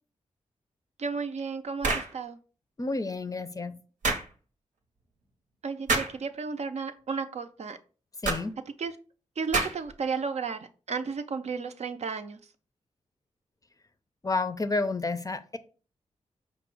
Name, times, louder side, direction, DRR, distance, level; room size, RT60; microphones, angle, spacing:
voice 1, 1.0-2.4 5.6-7.8 8.8-8.9 9.4-12.4, right 5 dB, 60° right, 0.5 m, -33 dB
sound 1, 1.8-2.1 4.0-4.3 5.9-6.2 8.2-8.5 9.5-9.9, right 3 dB, 85° right, 0.8 m, -27 dB
voice 2, 2.8-3.8 8.2-8.5 14.2-15.6, left 3 dB, 30° left, 0.5 m, -30 dB
5.2 x 2.0 x 4.6 m
cardioid pair, 45°, 13 cm